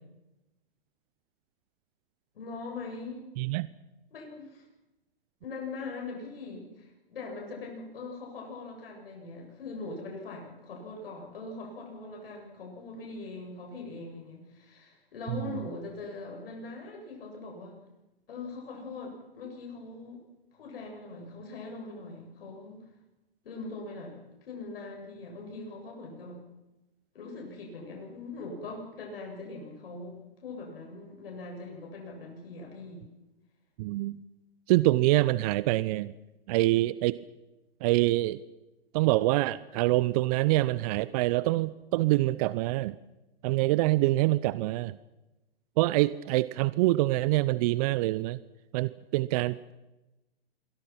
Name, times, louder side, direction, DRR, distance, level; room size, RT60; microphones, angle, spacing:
voice 1, 2.3-3.3 4.1-4.6 5.4-17.8 18.3-20.2 20.5-22.9 23.4-26.4 27.1-33.1, left 3 dB, 65° left, 1 dB, 7.6 m, -41 dB
voice 2, 3.4-3.7 15.5-15.6 33.8-34.2 34.7-36.1 36.5-37.2 37.8-38.4 38.9-43.0 43.4-45.0 45.8-48.4 48.7-49.7, right 18 dB, 40° right, 18 dB, 0.7 m, -25 dB
27.5 x 24.0 x 6.0 m, 1.0 s
hypercardioid pair, 115°, 31 cm